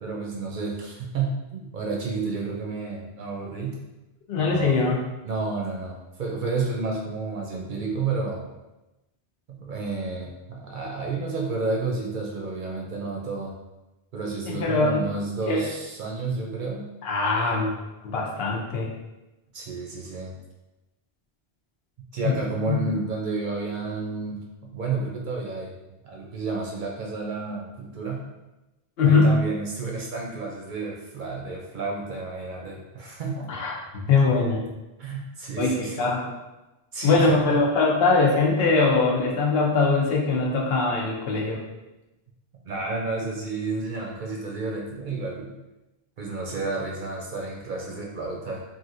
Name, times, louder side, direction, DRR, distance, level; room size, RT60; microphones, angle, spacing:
voice 1, 0.0-3.8 4.4-8.5 9.5-13.5 14.1-16.9 19.5-20.4 22.1-24.4 24.7-25.7 26.0-28.2 29.0-33.5 35.0-36.1 36.9-37.6 42.6-45.5 46.2-48.6, right 3 dB, 60° right, -1 dB, 0.6 m, -31 dB
voice 2, 4.3-5.0 14.4-15.1 15.5-15.7 17.0-17.7 18.0-18.9 22.2-22.3 22.7-22.8 29.0-29.4 33.5-34.6 35.6-36.3 37.0-41.6, left 3 dB, 70° left, -2 dB, 0.9 m, -22 dB
3.1 x 2.5 x 2.5 m, 1.0 s
omnidirectional pair, 1.1 m